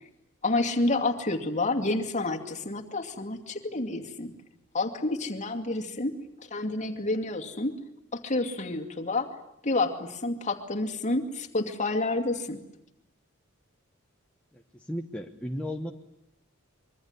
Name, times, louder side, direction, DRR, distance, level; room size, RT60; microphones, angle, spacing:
voice 1, 0.4-4.3 4.7-6.1 6.5-7.7 8.1-9.3 9.6-12.6, left 2 dB, 35° left, 3 dB, 2.5 m, -29 dB
voice 2, 14.5-15.9, equal, 5° left, 2 dB, 1.1 m, -35 dB
25.5 x 23.5 x 9.7 m, 0.78 s
head